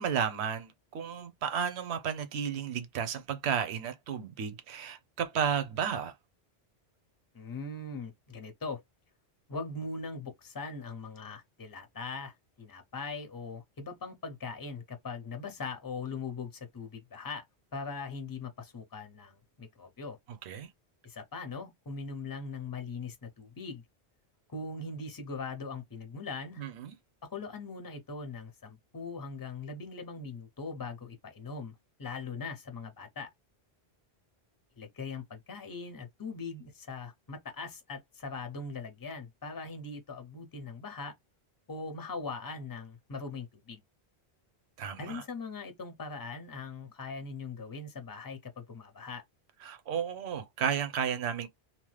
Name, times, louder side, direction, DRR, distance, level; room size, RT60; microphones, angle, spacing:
voice 1, 0.0-6.1 20.4-20.7 26.6-26.9 44.8-45.2 49.6-51.5, right 7 dB, 80° right, 0.9 m, -33 dB
voice 2, 7.3-8.8 9.5-17.4 17.7-20.2 21.0-23.8 24.5-26.6 27.3-31.7 32.0-33.3 34.8-41.1 41.7-43.8 45.0-49.2, left 4 dB, 25° left, 0.6 m, -40 dB
2.9 x 2.0 x 3.1 m
omnidirectional pair, 1.1 m